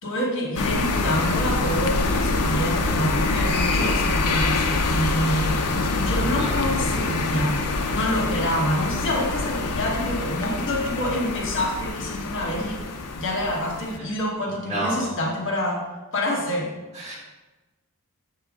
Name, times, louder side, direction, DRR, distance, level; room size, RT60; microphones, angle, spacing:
voice 1, 0.0-12.8 13.2-15.8 16.1-16.7, equal, 60° left, -2 dB, 1.4 m, -27 dB
sound 1, 0.6-14.0, left 3 dB, 85° left, 0.7 m, -25 dB
voice 2, 14.7-15.1 16.9-17.2, right 1 dB, 30° right, -5 dB, 2.2 m, -29 dB
7.2 x 5.5 x 3.7 m, 1.2 s
head